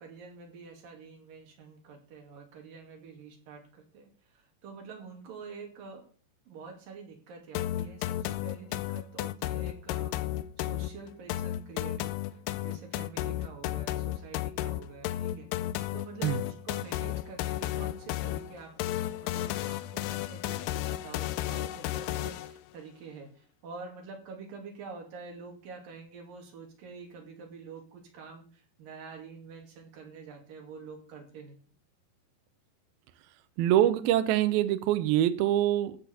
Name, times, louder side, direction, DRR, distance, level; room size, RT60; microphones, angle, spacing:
voice 1, 0.0-6.0 6.5-10.2 10.6-15.5 15.9-18.7 19.1-31.6, right 4 dB, 60° right, 3.8 m, -47 dB
sound 1, 7.6-22.6, left 14 dB, 80° left, 2.6 m, -33 dB
voice 2, 33.6-36.0, right 12 dB, 75° right, 2.4 m, -24 dB
15.0 x 5.3 x 7.0 m
omnidirectional pair, 4.9 m